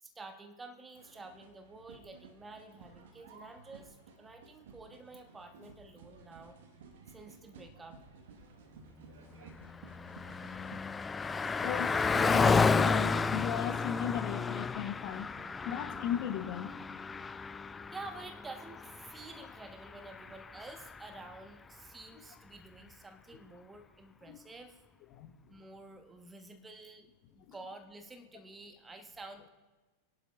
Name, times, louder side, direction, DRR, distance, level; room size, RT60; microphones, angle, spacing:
voice 1, 0.0-6.5 7.1-8.0 17.9-24.8 25.5-27.1 27.3-29.5, right 3 dB, 15° right, 7 dB, 1.1 m, -50 dB
sound 1, 0.9-10.8, right 4 dB, 55° right, 1.4 m, -55 dB
Car passing by, 9.4-21.2, left 4 dB, 15° left, 0.3 m, -32 dB
voice 2, 11.6-15.3 15.6-16.7 24.3-24.4 25.1-25.3, left 10 dB, 40° left, 9 dB, 0.9 m, -36 dB
23.5 x 11.0 x 2.4 m, 1.2 s
figure-of-eight pair, 90°, 0 cm